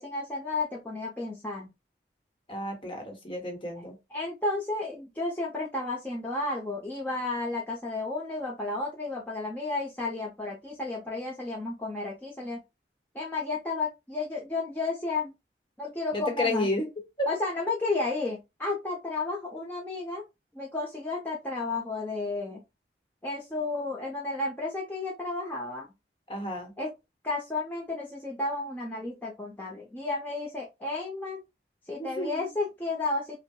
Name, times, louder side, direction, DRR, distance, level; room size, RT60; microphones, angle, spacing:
voice 1, 0.0-1.7 4.1-12.6 13.1-15.3 15.8-16.7 17.3-20.2 20.5-22.6 23.2-25.9 26.8-26.9 27.2-31.4 31.9-33.4, left 3 dB, 10° left, 0.6 m, -32 dB
voice 2, 2.5-3.9 16.1-16.9 17.2-17.3 26.3-26.7 32.0-32.5, left 1 dB, 30° left, 1.0 m, -31 dB
5.4 x 2.1 x 2.3 m
head